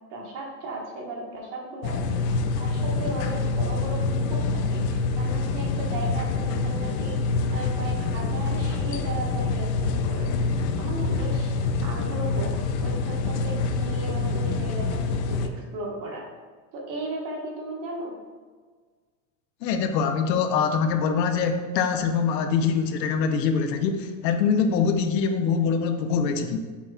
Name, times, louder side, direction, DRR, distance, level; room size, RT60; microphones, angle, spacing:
voice 1, 0.1-2.2 2.6-10.3 10.5-16.2 16.7-18.2, right 2 dB, 40° right, -1 dB, 1.5 m, -36 dB
sound 1, 1.8-15.5, left 3 dB, 45° left, 0.5 m, -26 dB
voice 2, 19.6-26.6, left 6 dB, 90° left, 6 dB, 0.8 m, -24 dB
7.2 x 6.0 x 2.3 m, 1.5 s
supercardioid pair, 150°, 48 cm